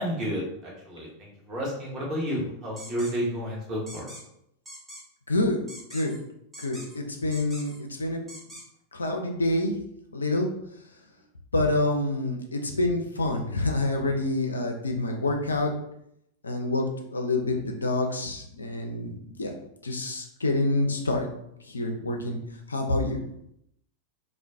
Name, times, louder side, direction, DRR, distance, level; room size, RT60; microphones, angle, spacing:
voice 1, 0.0-4.1, equal, 35° right, -3 dB, 1.1 m, -31 dB
sound 1, 2.8-3.1 3.9-4.2 4.6-5.0 5.7-6.2 6.5-7.0 7.3-7.8 8.3-8.6, equal, 10° right, 0.7 m, -43 dB
voice 2, 5.3-5.6 5.9-6.1 6.6-8.2 8.9-9.7 10.1-10.5 11.5-15.7 16.4-16.8 17.1-19.1 19.4-19.5 19.8-21.3 21.7-22.4 22.7-23.2, left 2 dB, 75° left, 3 dB, 0.4 m, -27 dB
2.4 x 2.2 x 3.4 m, 0.77 s
figure-of-eight pair, 90°, 0 cm